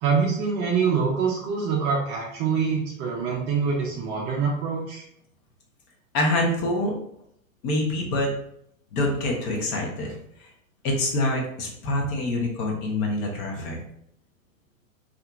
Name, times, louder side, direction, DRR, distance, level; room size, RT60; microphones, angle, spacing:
voice 1, 0.0-5.0, right 5 dB, 25° right, -2 dB, 0.4 m, -25 dB
voice 2, 6.1-6.9 7.6-8.3 8.9-10.1 10.4-10.5 10.8-13.8, left 1 dB, 35° left, 0 dB, 0.6 m, -25 dB
2.7 x 2.5 x 2.2 m, 0.71 s
hypercardioid pair, 115°, 41 cm